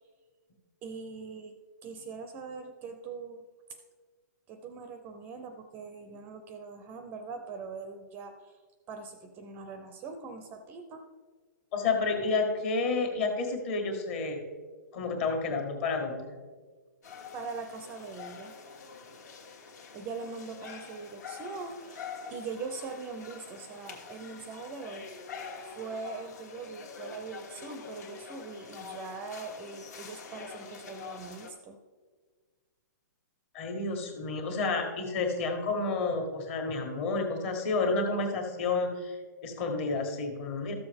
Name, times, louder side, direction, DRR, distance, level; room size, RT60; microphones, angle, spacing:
voice 1, 0.8-1.6 1.8-3.4 3.7-3.8 4.5-8.6 8.9-11.1 17.3-18.5 19.9-25.1 25.6-31.8, right 4 dB, 20° right, 7 dB, 0.5 m, -42 dB
voice 2, 11.7-14.4 14.9-16.3 33.5-39.2 39.4-40.7, left 3 dB, 40° left, 2 dB, 1.6 m, -30 dB
sound 1, 17.0-31.5, left 5 dB, 60° left, 1.5 m, -45 dB
13.0 x 6.8 x 3.5 m, 1.5 s
hypercardioid pair, 155°, 10 cm